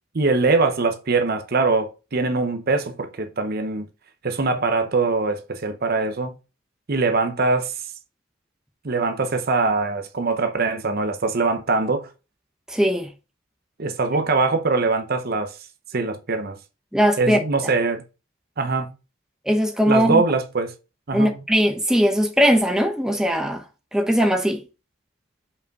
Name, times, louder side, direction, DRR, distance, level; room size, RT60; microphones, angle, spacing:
voice 1, 0.1-3.9 4.2-6.3 6.9-7.7 8.8-12.1 13.8-15.5 15.9-16.6 17.2-18.0 18.6-18.9 19.9-20.7 21.1-21.4, right 3 dB, 45° right, 0.7 m, -22 dB
voice 2, 12.7-13.1 16.9-17.4 19.5-20.2 21.1-23.6 23.9-24.6, equal, 5° right, 0.9 m, -19 dB
5.4 x 4.8 x 4.7 m
head